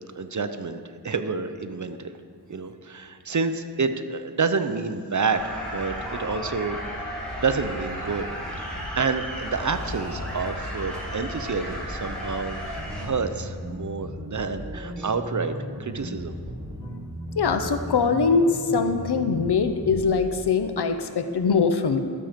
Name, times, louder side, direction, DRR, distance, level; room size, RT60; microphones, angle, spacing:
voice 1, 0.2-2.1 2.5-6.8 7.4-8.3 8.6-16.3, right 4 dB, 50° right, 9 dB, 0.6 m, -29 dB
sound 1, 5.3-13.1, equal, 5° left, 2.7 m, -33 dB
sound 2, 12.8-20.2, equal, 20° right, 1.3 m, -36 dB
voice 2, 17.4-22.0, left 5 dB, 85° left, 8 dB, 0.7 m, -22 dB
12.0 x 7.4 x 5.1 m, 2.1 s
wide cardioid pair, 65°, 39 cm